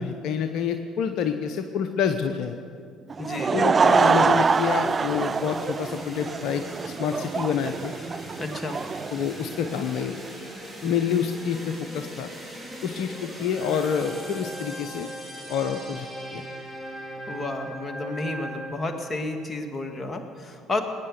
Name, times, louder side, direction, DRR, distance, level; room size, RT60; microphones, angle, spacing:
voice 1, 0.0-2.6 3.5-7.9 9.1-10.2 10.8-12.3 12.8-15.1 15.5-16.1 16.3-16.4, left 7 dB, 65° left, 7 dB, 0.7 m, -27 dB
Laughter / Crowd, 3.1-10.0, right 5 dB, 35° right, 0.4 m, -24 dB
voice 2, 3.2-3.6 8.4-8.8 17.3-20.8, left 2 dB, 25° left, 4 dB, 2.0 m, -31 dB
sound 1, 3.7-18.7, right 1 dB, 5° right, 4.2 m, -39 dB
20.0 x 9.6 x 6.8 m, 2.3 s
hypercardioid pair, 55°, 0 cm